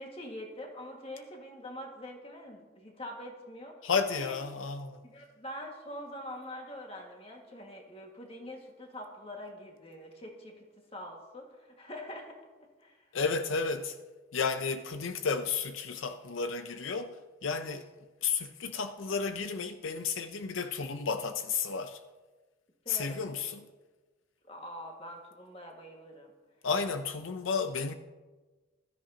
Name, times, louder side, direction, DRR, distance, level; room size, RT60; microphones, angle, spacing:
voice 1, 0.0-3.9 4.2-4.4 5.0-12.4 12.8-13.1 22.9-23.4 24.5-26.3, left 1 dB, 30° left, 1.8 m, -44 dB
voice 2, 3.8-5.0 13.1-14.0 14.3-17.1 17.4-17.9 18.2-22.0 22.9-23.7 26.6-27.9, left 5 dB, 80° left, 0.6 m, -32 dB
15.5 x 13.0 x 2.8 m
head